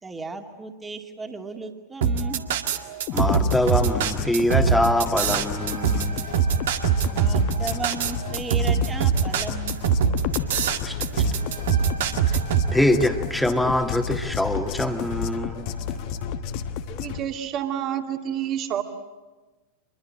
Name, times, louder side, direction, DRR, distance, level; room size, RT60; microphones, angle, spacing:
voice 1, 0.0-2.4 7.1-9.8, right 4 dB, 15° right, 5 dB, 2.4 m, -35 dB
sound 1, 2.0-12.7, right 7 dB, 60° right, 1.8 m, -22 dB
sound 2, 3.1-17.2, left 8 dB, 45° left, 1.1 m, -31 dB
voice 2, 3.1-6.2 10.8-11.2 12.3-12.4 12.7-15.7, left 1 dB, 5° left, 6 dB, 2.0 m, -24 dB
sound 3, 5.0-16.5, right 2 dB, 75° right, 4.2 m, -46 dB
voice 3, 16.9-18.8, right 10 dB, 35° right, 6 dB, 2.3 m, -29 dB
26.5 x 22.0 x 8.8 m, 1.2 s
figure-of-eight pair, 90°, 0 cm